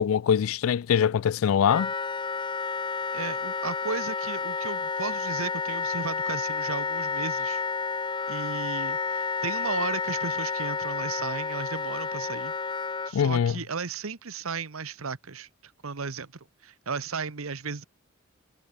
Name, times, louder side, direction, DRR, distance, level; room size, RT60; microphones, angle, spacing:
voice 1, 0.0-1.9 13.1-13.5, left 8 dB, 75° left, 0.3 m, -23 dB
Wind instrument woodwind instrument, 1.7-13.1, left 4 dB, 25° left, 0.7 m, -30 dB
voice 2, 3.1-7.6 8.3-12.5 13.1-16.3 16.6-17.8, right 5 dB, 80° right, 1.1 m, -35 dB
head